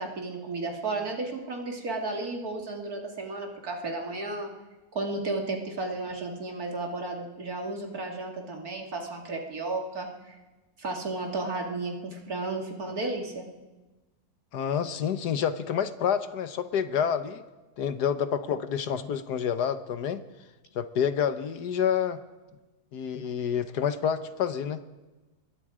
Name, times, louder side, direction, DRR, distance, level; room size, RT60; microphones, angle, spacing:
voice 1, 0.0-4.5 4.9-10.4 10.8-13.5, right 2 dB, 65° right, 1 dB, 3.0 m, -33 dB
voice 2, 14.5-17.4 17.8-20.2 20.8-22.2 22.9-24.8, left 8 dB, 80° left, 11 dB, 1.6 m, -28 dB
25.0 x 21.5 x 5.0 m, 1.2 s
omnidirectional pair, 1.7 m